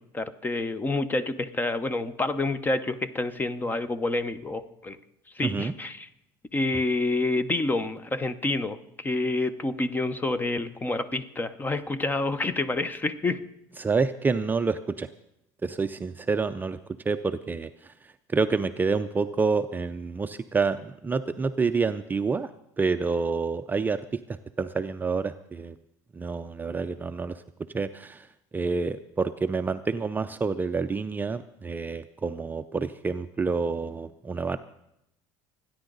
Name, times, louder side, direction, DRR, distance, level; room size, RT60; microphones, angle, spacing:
voice 1, 0.1-5.0 5.3-6.1 6.5-13.4, left 2 dB, 20° left, 13 dB, 0.8 m, -28 dB
voice 2, 5.4-5.7 13.8-15.1 15.6-16.8 17.1-17.9 18.3-22.5 22.8-24.0 24.6-25.8 26.1-27.4 27.7-28.3 28.5-34.6, right 4 dB, 20° right, 9 dB, 0.5 m, -28 dB
27.0 x 10.0 x 4.0 m, 0.81 s
supercardioid pair, 105°, 9 cm